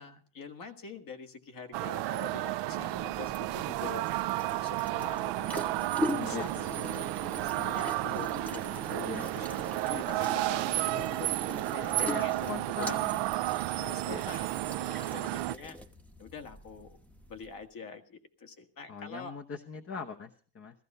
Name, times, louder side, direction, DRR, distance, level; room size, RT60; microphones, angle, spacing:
voice 1, 0.0-4.0 4.5-7.1 7.4-13.1 13.7-15.8 16.2-17.0 17.3-19.3, left 4 dB, 55° left, 6 dB, 1.9 m, -45 dB
sound 1, 1.7-15.5, right 17 dB, 85° right, 0.7 m, -32 dB
sound 2, 2.6-17.6, left 1 dB, 5° left, 1.0 m, -42 dB
voice 2, 6.1-6.6 9.0-9.3 12.0-13.2 14.1-14.2 18.9-20.8, left 5 dB, 35° left, 4 dB, 1.0 m, -40 dB
15.0 x 15.0 x 5.5 m, 0.42 s
cardioid pair, 130°, 41 cm